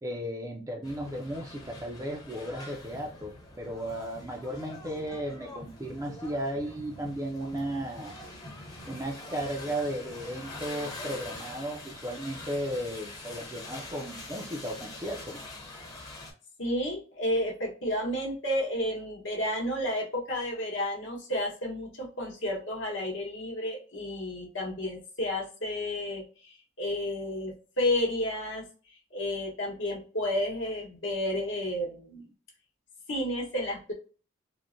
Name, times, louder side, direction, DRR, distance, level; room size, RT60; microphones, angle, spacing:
voice 1, 0.0-3.3 3.6-8.1 8.9-15.4, right 1 dB, 15° right, 1 dB, 0.3 m, -35 dB
sound 1, 0.8-16.3, left 2 dB, 20° left, 0.7 m, -44 dB
voice 2, 16.6-28.6 29.1-32.3 33.1-33.9, left 1 dB, 65° left, -1 dB, 1.0 m, -31 dB
3.6 x 2.0 x 2.4 m, 0.37 s
head